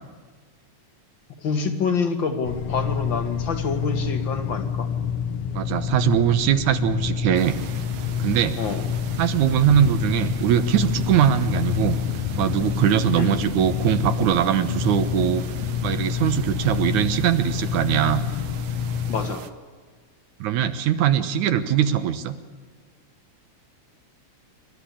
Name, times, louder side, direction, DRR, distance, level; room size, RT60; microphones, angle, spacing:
voice 1, 1.4-4.9 8.6-8.9 13.1-13.3 19.1-19.5, left 5 dB, 45° left, 7 dB, 2.4 m, -27 dB
sound 1, 2.4-19.4, left 7 dB, 85° left, 2.4 m, -28 dB
voice 2, 5.5-7.6 8.2-8.6 9.2-12.0 12.4-15.4 15.8-18.2 20.4-22.4, right 10 dB, 80° right, 10 dB, 2.6 m, -21 dB
sound 2, 7.3-19.5, right 9 dB, 65° right, 1.8 m, -41 dB
27.5 x 13.5 x 8.5 m, 1.5 s
omnidirectional pair, 3.4 m